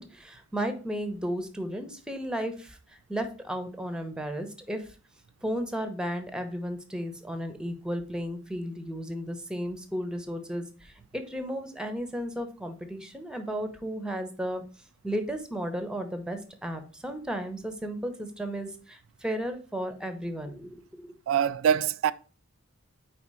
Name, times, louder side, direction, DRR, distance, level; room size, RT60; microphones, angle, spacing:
voice 1, 0.0-4.9 5.4-14.6 15.0-21.1, equal, 5° right, 0.7 m, -34 dB
voice 2, 21.3-22.1, right 8 dB, 85° right, 0.3 m, -24 dB
4.6 x 4.2 x 4.8 m
head